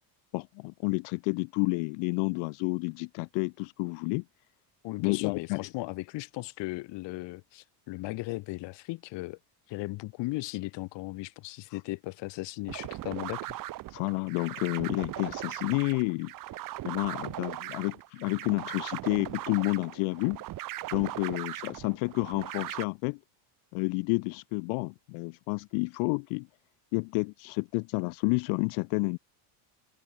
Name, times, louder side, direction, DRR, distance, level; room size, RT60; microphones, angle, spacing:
voice 1, 0.3-4.2 5.0-5.6 11.7-11.8 13.9-16.3 16.8-20.4 20.9-23.2 23.7-26.5 26.9-29.2, left 36 dB, 80° left, 0.9 m, -30 dB
voice 2, 4.8-9.4 9.7-13.6, left 21 dB, 55° left, 2.0 m, -37 dB
sound 1, 12.7-22.8, right 16 dB, 40° right, 1.2 m, -39 dB
cardioid pair, 170°, 50 cm